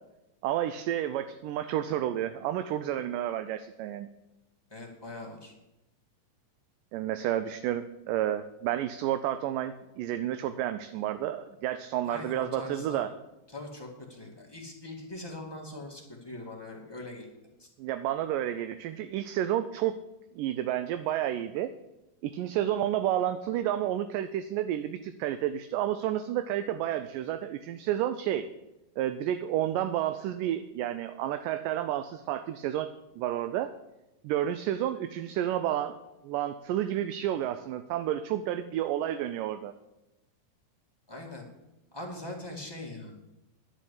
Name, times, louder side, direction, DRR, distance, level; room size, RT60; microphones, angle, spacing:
voice 1, 0.4-4.1 6.9-13.1 17.8-20.0 20.4-21.7 22.2-28.5 29.0-33.7 34.2-36.0 36.2-39.7, right 11 dB, 80° right, 10 dB, 2.2 m, -30 dB
voice 2, 4.7-5.5 12.0-13.0 13.5-17.3 17.6-17.7 41.1-41.5 41.9-43.1, left 2 dB, 10° left, -2 dB, 1.3 m, -41 dB
11.0 x 6.4 x 8.4 m, 0.95 s
omnidirectional pair, 3.9 m